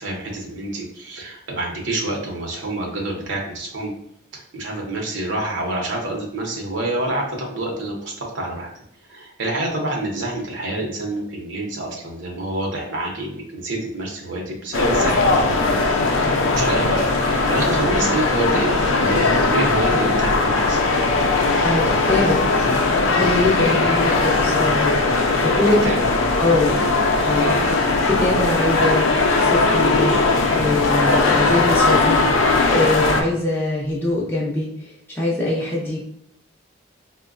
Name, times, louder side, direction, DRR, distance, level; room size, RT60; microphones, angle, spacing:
voice 1, 0.0-3.9 4.3-8.7 9.0-15.8 16.1-20.9 25.5-26.0 27.4-27.7, right 2 dB, 70° right, -1 dB, 0.7 m, -27 dB
sound 1, 14.7-33.2, left 3 dB, 85° left, 0.4 m, -19 dB
voice 2, 21.6-22.4 23.1-25.8 26.4-26.9 27.2-27.5 28.0-29.1 29.4-30.1 30.5-32.2 32.7-36.0, left 2 dB, 10° left, -5 dB, 0.5 m, -23 dB
4.4 x 2.1 x 2.4 m, 0.72 s
head